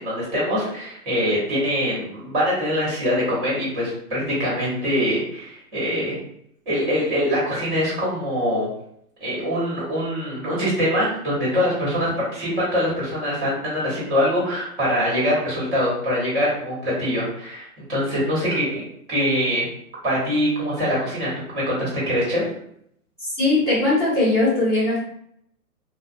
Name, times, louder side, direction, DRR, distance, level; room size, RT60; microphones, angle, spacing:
voice 1, 0.0-6.2 6.6-8.7 9.2-19.6 20.0-22.4, equal, 35° right, -7 dB, 1.3 m, -23 dB
voice 2, 23.2-25.0, left 2 dB, 10° right, -14 dB, 0.6 m, -20 dB
2.4 x 2.2 x 2.5 m, 0.70 s
hypercardioid pair, 160°, 45 cm